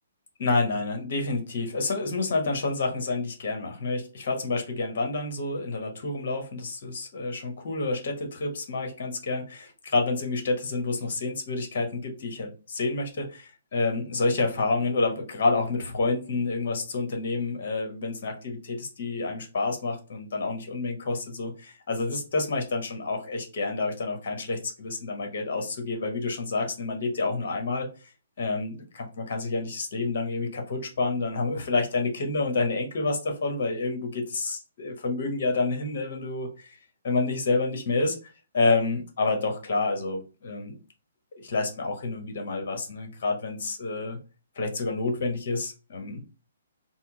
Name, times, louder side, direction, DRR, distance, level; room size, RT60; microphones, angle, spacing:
voice 1, 0.4-12.5 12.8-27.9 28.4-36.8 37.0-38.2 38.5-40.7 41.4-44.2 44.5-46.2, left 3 dB, 50° left, 3 dB, 1.1 m, -28 dB
4.2 x 2.0 x 3.7 m, 0.34 s
figure-of-eight pair, 125°, 0 cm